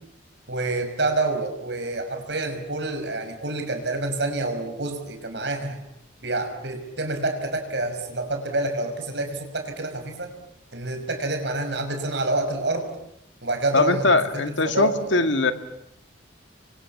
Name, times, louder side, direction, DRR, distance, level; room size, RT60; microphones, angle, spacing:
voice 1, 0.5-5.8 6.2-10.3 10.7-12.9 13.4-15.2, right 2 dB, 60° right, 6 dB, 5.9 m, -28 dB
voice 2, 13.7-15.5, left 3 dB, 70° left, 8 dB, 2.1 m, -21 dB
29.5 x 24.5 x 7.3 m, 0.81 s
head